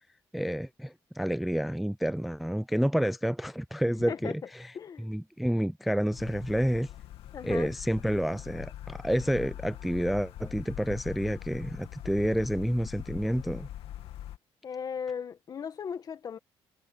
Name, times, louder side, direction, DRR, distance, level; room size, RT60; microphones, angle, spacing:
voice 1, 0.3-6.9 7.4-13.7, equal, ahead, 0.3 m, -29 dB
voice 2, 4.7-5.1 7.3-7.7 14.6-16.4, left 7 dB, 40° left, 1.7 m, -37 dB
sound 1, 6.1-14.4, left 12 dB, 75° left, 2.3 m, -42 dB
cardioid pair, 135°, 10 cm